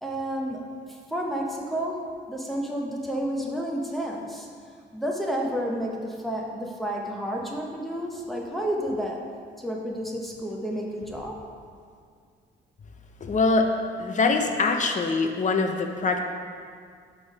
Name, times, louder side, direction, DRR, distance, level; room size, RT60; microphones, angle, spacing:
voice 1, 0.0-4.5 4.9-9.2 9.6-11.4, equal, ahead, -1 dB, 0.8 m, -31 dB
voice 2, 13.2-13.7 14.0-16.2, left 3 dB, 40° left, 4 dB, 0.6 m, -23 dB
5.9 x 3.5 x 5.3 m, 2.1 s
cardioid pair, 90°, 20 cm